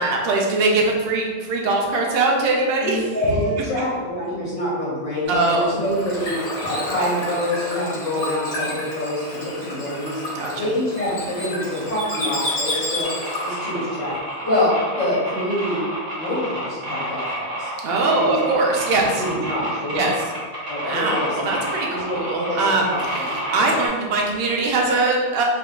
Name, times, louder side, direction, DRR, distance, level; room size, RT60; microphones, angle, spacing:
voice 1, 0.0-3.0 3.3-3.4 5.3-5.7 10.3-10.7 17.8-19.2 19.9-20.1 20.8-21.9 22.2-22.9 23.5-25.4, right 3 dB, 60° right, -1 dB, 0.6 m, -21 dB
voice 2, 2.8-10.3 10.6-13.1 13.4-14.1 14.4-15.9 16.1-17.7 18.0-18.4 18.9-20.1 20.7-22.6 22.9-23.8, left 1 dB, 60° left, -8 dB, 1.3 m, -26 dB
Bird / Water, 5.3-13.7, left 1 dB, 85° left, 1.4 m, -30 dB
sound 1, 13.0-23.9, equal, 35° right, 1.0 m, -30 dB
3.3 x 2.9 x 2.4 m, 1.5 s
omnidirectional pair, 1.5 m